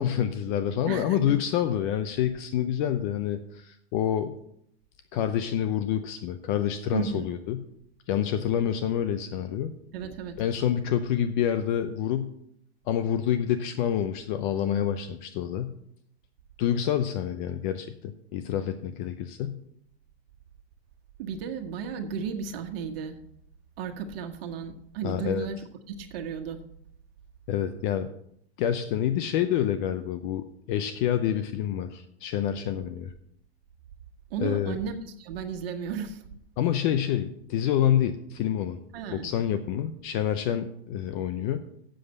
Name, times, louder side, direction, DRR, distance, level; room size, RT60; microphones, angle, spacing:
voice 1, 0.0-4.3 5.1-7.6 8.1-9.7 10.4-12.3 12.9-15.7 16.6-19.6 25.0-25.5 27.5-28.1 28.6-33.1 34.4-34.8 36.6-38.8 39.1-41.6, left 10 dB, 50° left, 10 dB, 0.8 m, -27 dB
voice 2, 0.9-1.2 6.9-7.3 9.9-10.4 21.2-23.2 23.8-25.6 25.9-26.6 34.3-36.2 38.9-39.3, right 6 dB, 60° right, 4 dB, 1.4 m, -34 dB
7.8 x 6.4 x 8.0 m, 0.72 s
hypercardioid pair, 130°, 32 cm